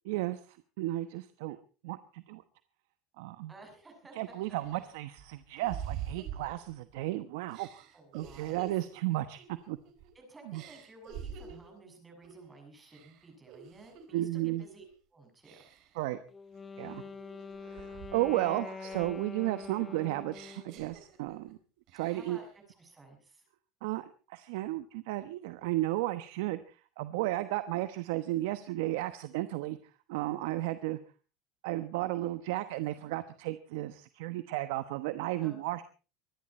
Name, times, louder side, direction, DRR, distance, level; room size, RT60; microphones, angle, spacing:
voice 1, 0.0-1.6 1.8-2.4 3.2-3.5 4.1-7.8 8.1-9.8 10.5-10.6 14.1-14.6 15.9-16.2 16.8-17.0 17.6-21.6 21.9-22.4 23.8-29.8 30.1-31.0 31.6-35.8, right 16 dB, 75° right, 12 dB, 1.1 m, -34 dB
voice 2, 3.5-4.8 7.9-8.9 10.2-14.8 15.1-15.6 22.1-22.5 22.8-23.5 35.4-35.6, right 2 dB, 15° right, 3 dB, 6.8 m, -54 dB
sound 1, 3.7-3.8 4.3-7.0 7.5-10.1 10.5-11.8 12.2-12.5 12.9-14.2 14.6-14.9 15.4-16.0 16.5-18.5 18.8-21.5 21.9-22.5, right 9 dB, 50° right, 4.0 m, -47 dB
Wind instrument woodwind instrument, 16.3-20.8, left 5 dB, 15° left, 0.7 m, -44 dB
24.0 x 11.5 x 4.4 m, 0.36 s
supercardioid pair, 145°, 0 cm